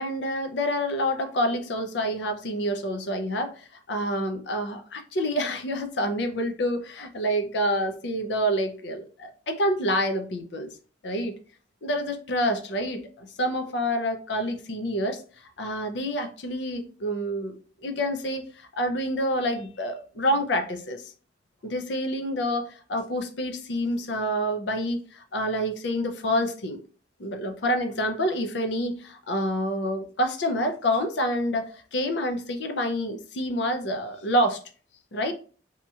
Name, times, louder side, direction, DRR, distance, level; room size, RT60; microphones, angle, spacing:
voice 1, 0.0-10.7 11.0-11.4 11.8-15.2 15.6-21.1 21.6-26.8 27.2-34.6 35.1-35.3, equal, 70° left, 6 dB, 0.5 m, -28 dB
2.8 x 2.7 x 2.3 m, 0.40 s
head